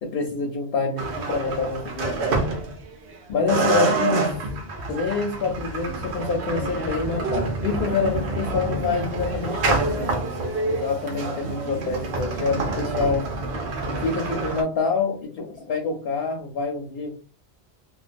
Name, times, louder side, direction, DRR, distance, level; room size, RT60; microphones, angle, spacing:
voice 1, 0.0-2.4 3.3-4.4 4.9-13.3 14.0-17.1, left 4 dB, 70° left, 2 dB, 0.7 m, -27 dB
sound 1, 1.0-3.1 3.5-14.6, right 3 dB, 75° right, 0.9 m, -27 dB
2.3 x 2.3 x 2.5 m, 0.37 s
omnidirectional pair, 1.1 m